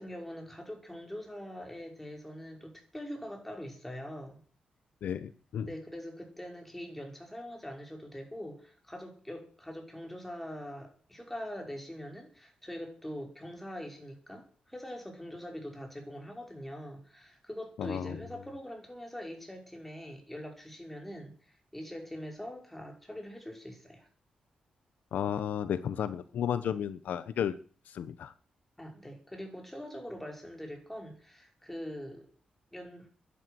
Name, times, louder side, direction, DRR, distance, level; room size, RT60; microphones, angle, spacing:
voice 1, 0.0-4.4 5.7-24.1 28.8-32.3 32.7-33.1, equal, 5° left, 2 dB, 5.6 m, -43 dB
voice 2, 5.0-5.7 17.8-18.2 25.1-27.6 27.9-28.3, left 9 dB, 80° left, 13 dB, 1.0 m, -33 dB
11.0 x 11.0 x 9.4 m, 0.41 s
cardioid pair, 105°, 3 cm